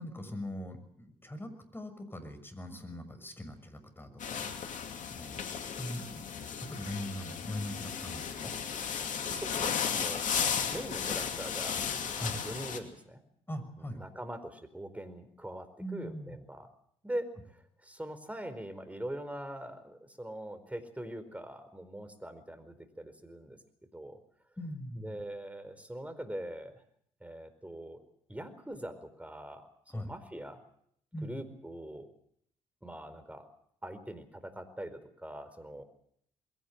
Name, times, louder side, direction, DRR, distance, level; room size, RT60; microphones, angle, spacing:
voice 1, 0.0-4.8 5.1-5.4 5.8-6.3 6.6-8.5 12.1-12.4 13.5-14.0 15.8-16.4 24.6-25.2 29.9-30.2 31.1-31.4, left 1 dB, 15° left, 8 dB, 6.4 m, -41 dB
sound 1, 4.2-12.8, left 7 dB, 60° left, 2.6 m, -35 dB
voice 2, 9.3-13.2 14.0-15.7 15.9-16.7 17.0-23.6 23.9-24.2 25.0-26.7 27.2-28.0 28.3-29.7 29.9-30.6 31.2-32.1 32.8-33.5 33.8-35.8, right 1 dB, 10° right, 10 dB, 4.6 m, -42 dB
21.5 x 18.0 x 8.2 m, 0.68 s
hypercardioid pair, 50°, 15 cm